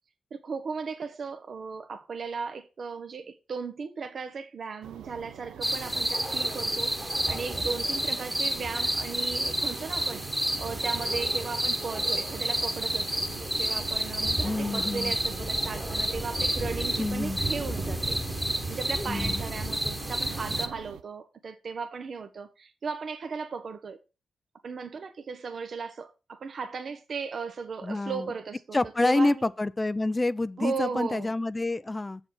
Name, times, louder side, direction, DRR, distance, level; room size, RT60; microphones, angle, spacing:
voice 1, 0.3-10.2 10.6-24.0 24.6-29.5 30.6-31.3, right 5 dB, 60° right, 0.9 m, -36 dB
sound 1, 4.8-21.0, right 9 dB, 90° right, 0.7 m, -44 dB
sound 2, 5.6-20.7, right 1 dB, 10° right, 1.3 m, -30 dB
voice 2, 14.4-15.1 17.0-17.4 19.1-19.4 27.8-28.2 28.7-32.2, left 2 dB, 25° left, 0.5 m, -28 dB
7.1 x 5.4 x 6.1 m
supercardioid pair, 55°, 0 cm